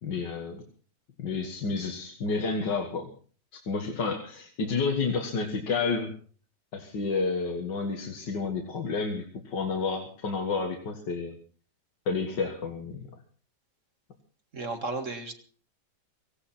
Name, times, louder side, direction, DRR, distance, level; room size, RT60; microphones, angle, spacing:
voice 1, 0.0-0.6 1.2-3.1 3.7-6.1 6.7-11.4 12.1-13.0, left 4 dB, 80° left, 3 dB, 2.4 m, -30 dB
voice 2, 14.5-15.4, right 3 dB, 45° right, 6 dB, 2.2 m, -33 dB
17.5 x 16.5 x 4.3 m, 0.41 s
omnidirectional pair, 1.9 m